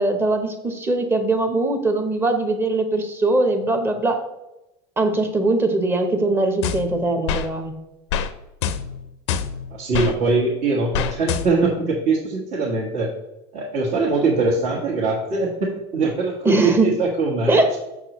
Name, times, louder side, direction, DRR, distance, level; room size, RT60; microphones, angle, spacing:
voice 1, 0.0-4.2 5.0-7.7 16.4-16.9 17.5-17.8, right 2 dB, 15° right, 6 dB, 0.8 m, -21 dB
sound 1, 6.6-7.5 8.1-8.3 8.6-10.1 10.9-11.8, left 7 dB, 85° left, 0.5 m, -26 dB
voice 2, 9.7-13.1 13.5-17.6, right 3 dB, 60° right, -5 dB, 1.5 m, -22 dB
6.4 x 6.3 x 3.0 m, 0.95 s
supercardioid pair, 140°, 14 cm